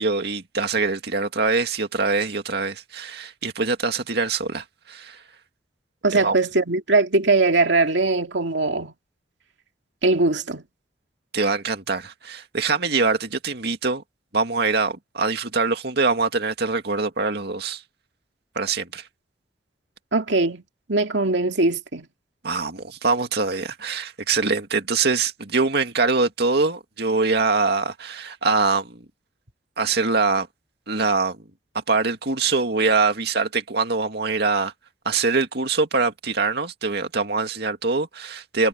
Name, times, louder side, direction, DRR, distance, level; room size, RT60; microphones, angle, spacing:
voice 1, 0.0-5.2 6.1-6.4 11.3-14.0 14.3-17.8 18.6-19.0 22.4-29.0 29.8-30.5 30.9-31.4 31.7-34.7 35.0-38.7, right 4 dB, 65° right, 2.3 m, -23 dB
voice 2, 6.0-8.9 10.0-10.6 20.1-20.6 20.9-22.1, right 3 dB, 90° right, 2.3 m, -21 dB
head